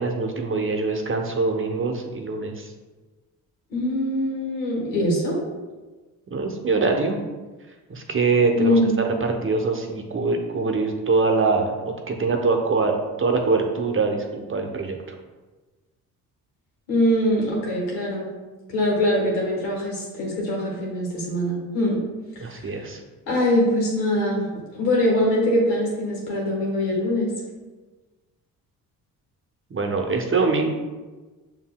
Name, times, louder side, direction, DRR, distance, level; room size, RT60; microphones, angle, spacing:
voice 1, 0.0-2.7 6.3-7.2 7.9-8.8 9.2-11.7 12.1-15.0 22.4-23.0 29.7-30.7, right 4 dB, 30° right, 3 dB, 0.8 m, -23 dB
voice 2, 3.7-5.4 8.5-9.0 16.9-18.3 18.7-22.0 22.3-22.4 23.3-24.5 24.7-27.3, left 1 dB, 90° left, -3 dB, 1.3 m, -23 dB
6.9 x 2.7 x 2.2 m, 1.2 s
hypercardioid pair, 50°, 41 cm